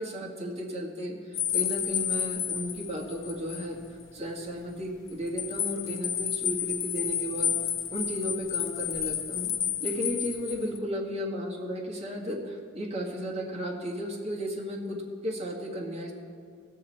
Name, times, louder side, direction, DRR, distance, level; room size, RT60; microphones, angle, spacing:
voice 1, 0.0-3.8 4.1-7.5 7.9-9.5 9.8-16.1, equal, 35° right, -2 dB, 1.7 m, -34 dB
sound 1, 1.3-3.7 4.0-4.1 5.1-10.8, left 9 dB, 90° left, 0.7 m, -31 dB
18.5 x 6.5 x 4.4 m, 2.2 s
head